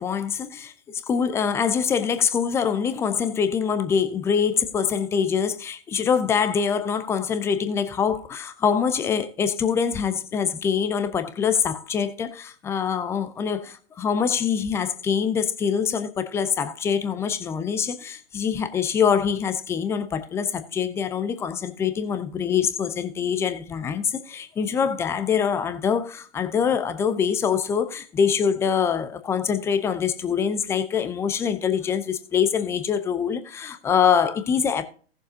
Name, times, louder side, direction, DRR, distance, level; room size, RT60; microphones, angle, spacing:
voice 1, 0.0-34.8, left 7 dB, 10° left, 0.5 m, -24 dB
17.5 x 7.0 x 2.7 m
figure-of-eight pair, 120°, 33 cm